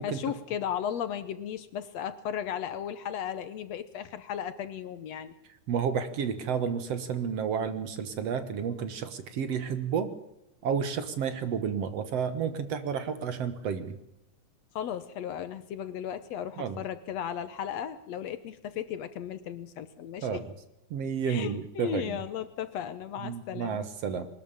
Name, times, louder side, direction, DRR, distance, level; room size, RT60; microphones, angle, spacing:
voice 1, 0.0-5.3 14.8-20.4 21.2-23.9, left 9 dB, 70° left, 13 dB, 1.9 m, -35 dB
voice 2, 5.7-10.1 10.6-13.9 16.6-16.8 20.2-20.4 20.9-22.2 23.2-24.3, right 7 dB, 60° right, 11 dB, 2.2 m, -31 dB
22.0 x 13.5 x 8.7 m, 0.88 s
omnidirectional pair, 3.5 m